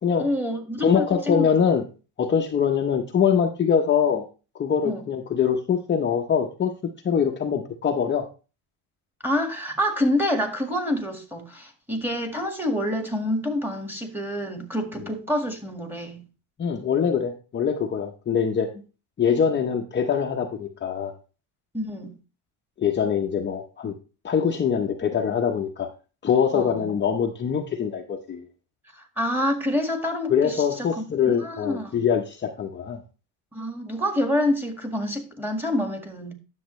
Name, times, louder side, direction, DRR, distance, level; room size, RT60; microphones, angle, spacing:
voice 1, 0.2-1.5 4.8-5.0 9.2-16.2 21.7-22.1 26.5-26.9 28.9-31.9 33.5-36.3, left 1 dB, 5° right, 1.7 m, -27 dB
voice 2, 0.8-1.8 2.2-4.2 4.5-6.7 7.0-8.3 16.6-18.7 19.2-21.1 22.8-23.9 24.2-25.9 26.2-28.5 30.3-33.0, left 7 dB, 25° left, 0.8 m, -23 dB
10.5 x 7.2 x 3.1 m
cardioid pair, 130°, 43 cm